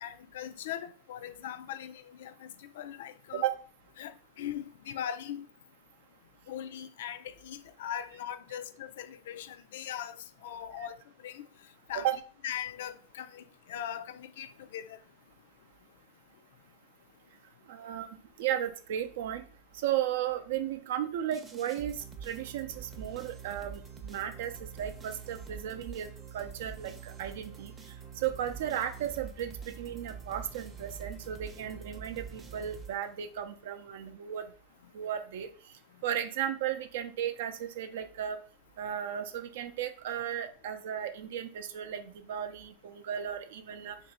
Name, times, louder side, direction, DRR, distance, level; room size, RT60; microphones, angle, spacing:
voice 1, 0.0-3.4 4.0-5.5 6.5-11.0 11.2-11.5 11.9-12.1 12.4-15.0, left 10 dB, 80° left, 0.3 m, -40 dB
voice 2, 17.7-19.4 19.7-34.5 34.9-35.5 36.0-38.4 38.8-44.0, right 10 dB, 80° right, 0.5 m, -35 dB
sound 1, 21.3-33.4, right 6 dB, 20° right, 0.6 m, -46 dB
3.0 x 2.6 x 4.1 m
supercardioid pair, 135°, 0 cm